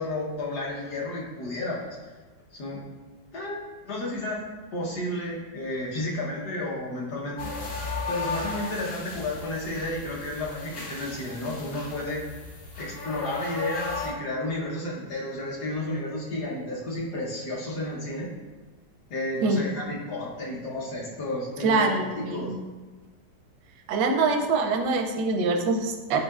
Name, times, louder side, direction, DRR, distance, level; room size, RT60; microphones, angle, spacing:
voice 1, 0.0-2.0 2.5-2.8 3.3-4.4 4.7-7.5 8.1-12.2 12.8-18.3 19.1-22.5, left 1 dB, 70° left, -4 dB, 1.5 m, -32 dB
sound 1, 7.4-14.1, left 3 dB, 50° left, 0.8 m, -36 dB
voice 2, 21.6-22.6 23.9-26.2, right 3 dB, 85° right, 4 dB, 1.2 m, -24 dB
8.3 x 2.8 x 2.3 m, 1.3 s
omnidirectional pair, 1.8 m